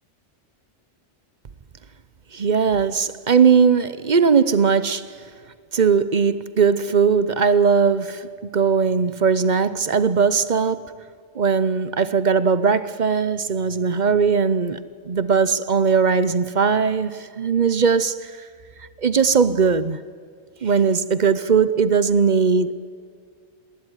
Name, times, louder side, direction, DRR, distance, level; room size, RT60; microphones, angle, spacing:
voice 1, 2.3-5.1 5.7-11.0 11.3-18.3 19.0-20.0 20.6-22.7, right 5 dB, 45° right, 0.8 m, -19 dB
27.0 x 13.0 x 9.9 m
omnidirectional pair, 1.2 m